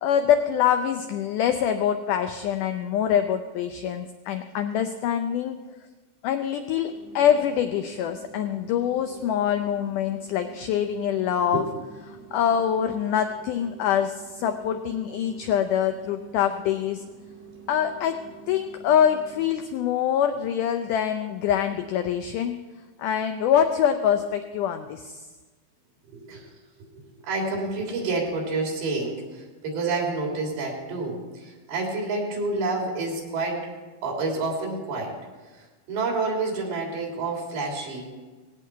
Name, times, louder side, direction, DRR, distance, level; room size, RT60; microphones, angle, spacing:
voice 1, 0.0-5.6 6.2-11.6 12.3-17.0 17.7-22.6 23.0-25.2, left 9 dB, 80° left, 8 dB, 1.9 m, -24 dB
sound 1, 6.8-19.5, right 5 dB, 40° right, 5.5 m, -47 dB
voice 2, 26.1-26.5 27.0-33.6 34.0-35.1 35.5-38.1, right 3 dB, 85° right, -1 dB, 5.3 m, -29 dB
19.0 x 16.5 x 4.6 m, 1.3 s
omnidirectional pair, 4.4 m